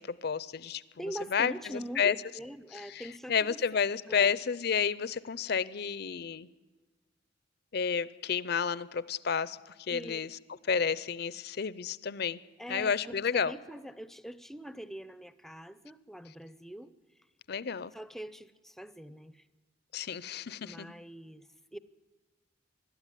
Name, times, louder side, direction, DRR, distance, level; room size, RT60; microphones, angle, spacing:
voice 1, 0.0-0.8 1.3-1.5 2.0-2.2 2.9-3.0 3.3-6.5 7.7-9.6 9.9-10.3 10.7-12.4 12.7-13.5 17.5-17.9 19.9-20.9, left 6 dB, 55° left, 18 dB, 0.6 m, -30 dB
voice 2, 0.9-3.6 4.1-4.3 9.9-10.2 12.6-16.9 17.9-19.4 20.6-21.8, right 1 dB, ahead, 14 dB, 0.6 m, -43 dB
20.5 x 13.0 x 10.0 m, 1.3 s
head